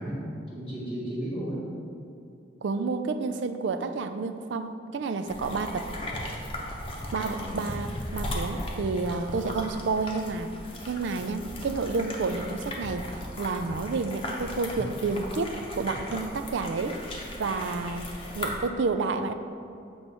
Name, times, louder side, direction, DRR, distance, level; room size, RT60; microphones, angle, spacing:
voice 1, 0.0-1.6 7.1-7.6, equal, 5° right, -11 dB, 1.3 m, -34 dB
voice 2, 2.6-5.9 7.1-10.5 10.9-13.1 13.4-18.1 18.4-19.3, right 4 dB, 75° right, 9 dB, 0.4 m, -30 dB
sound 1, 5.3-18.6, left 1 dB, 30° left, 0.8 m, -37 dB
7.8 x 3.0 x 5.4 m, 2.5 s
head